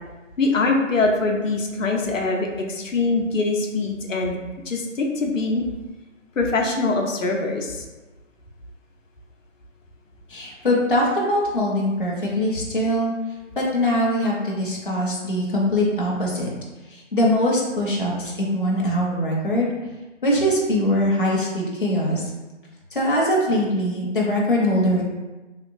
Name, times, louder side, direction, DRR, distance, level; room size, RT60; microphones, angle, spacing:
voice 1, 0.4-4.4 4.7-5.6 6.4-7.8, left 3 dB, 85° left, 1 dB, 0.7 m, -23 dB
voice 2, 10.3-13.1 13.6-16.5 16.9-19.7 20.2-22.3 22.9-25.0, equal, 45° left, -4 dB, 0.6 m, -22 dB
3.0 x 2.9 x 2.5 m, 1.2 s
figure-of-eight pair, 175°, 38 cm